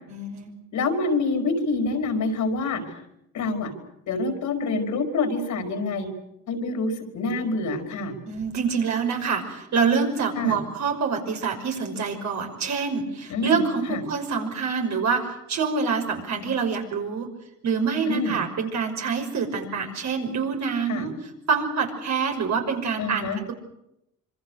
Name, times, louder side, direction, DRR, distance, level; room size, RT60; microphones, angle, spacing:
voice 1, 0.1-0.5 8.2-17.3 17.6-21.1 21.5-23.5, right 5 dB, 65° right, 3 dB, 6.0 m, -26 dB
voice 2, 0.7-2.8 3.3-3.7 4.1-6.1 6.5-8.1 10.4-10.6 13.3-13.6 13.9-14.0 18.1-18.4 20.9-21.1 23.0-23.4, left 3 dB, 75° left, 5 dB, 5.0 m, -26 dB
26.0 x 24.5 x 6.6 m, 0.82 s
cardioid pair, 90°, 30 cm